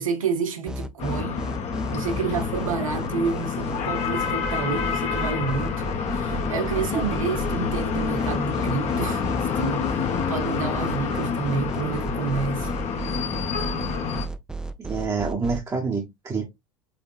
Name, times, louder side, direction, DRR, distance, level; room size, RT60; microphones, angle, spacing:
voice 1, 0.0-1.4 1.9-5.8 6.1-9.9 10.3-12.7, right 6 dB, 75° right, 1.1 m, -29 dB
sound 1, 0.7-15.6, right 2 dB, 5° right, 0.5 m, -34 dB
sound 2, 1.0-14.3, left 6 dB, 40° left, 1.1 m, -28 dB
voice 2, 14.8-16.5, right 4 dB, 20° right, 1.1 m, -27 dB
5.9 x 3.5 x 2.4 m
figure-of-eight pair, 70°, 17 cm